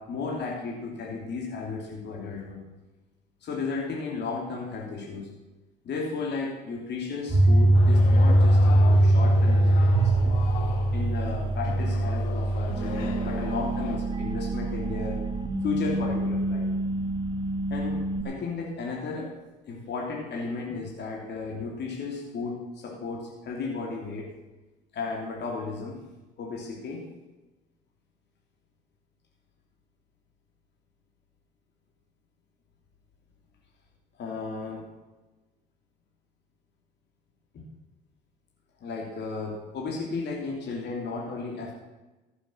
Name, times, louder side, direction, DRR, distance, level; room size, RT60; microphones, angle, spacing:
voice 1, 0.0-2.6 3.4-5.3 5.8-10.4 10.9-15.2 15.6-16.7 17.7-19.3 19.6-24.3 24.9-26.0 26.4-27.0 34.2-34.8 38.8-41.7, left 4 dB, 55° left, -1 dB, 3.2 m, -34 dB
sound 1, 7.3-18.2, right 1 dB, 20° right, 1.9 m, -23 dB
sound 2, 7.7-14.0, left 8 dB, 85° left, 1.3 m, -39 dB
15.0 x 8.2 x 6.4 m, 1.1 s
supercardioid pair, 80°, 21 cm